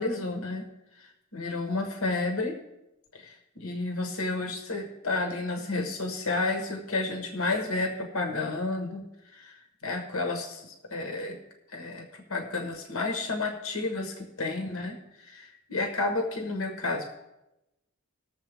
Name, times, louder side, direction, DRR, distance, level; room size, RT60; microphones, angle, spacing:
voice 1, 0.0-2.6 3.1-11.4 11.7-17.2, left 3 dB, 75° left, 4 dB, 1.3 m, -31 dB
19.5 x 7.2 x 3.5 m, 0.93 s
head